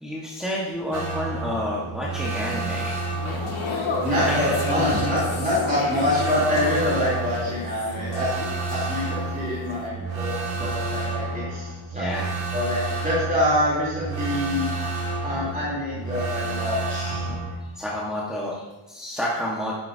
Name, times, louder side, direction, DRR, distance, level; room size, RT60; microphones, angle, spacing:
voice 1, 0.0-3.4 4.1-4.4 11.9-12.3 17.7-19.7, equal, ahead, -6 dB, 1.4 m, -30 dB
sound 1, 0.9-17.6, right 3 dB, 70° right, 2.9 m, -30 dB
sound 2, 3.1-9.3 9.6-9.9, left 3 dB, 70° left, 2.2 m, -33 dB
voice 2, 4.0-8.4 8.7-12.2 12.5-14.8 15.2-17.3, left 1 dB, 15° right, -8 dB, 3.3 m, -26 dB
11.5 x 11.5 x 2.8 m, 1.2 s
wide cardioid pair, 140°, 50 cm